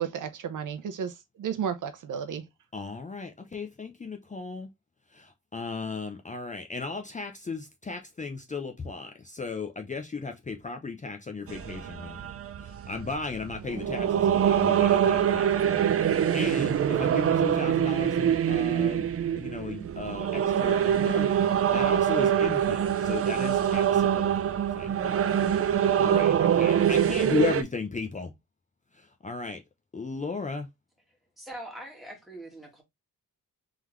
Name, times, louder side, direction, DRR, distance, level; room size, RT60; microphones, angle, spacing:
voice 1, 0.0-2.4, right 8 dB, 70° right, 0.8 m, -33 dB
voice 2, 2.7-4.7 5.1-12.2 12.6-19.1 19.4-24.3 24.7-25.2 25.7-28.3 28.9-29.6 29.9-30.7, left 4 dB, 25° left, 0.6 m, -35 dB
sound 1, 11.5-27.6, right 9 dB, 45° right, 0.5 m, -24 dB
voice 3, 31.4-32.8, right 1 dB, ahead, 1.9 m, -42 dB
3.7 x 3.5 x 3.1 m
wide cardioid pair, 120°, 32 cm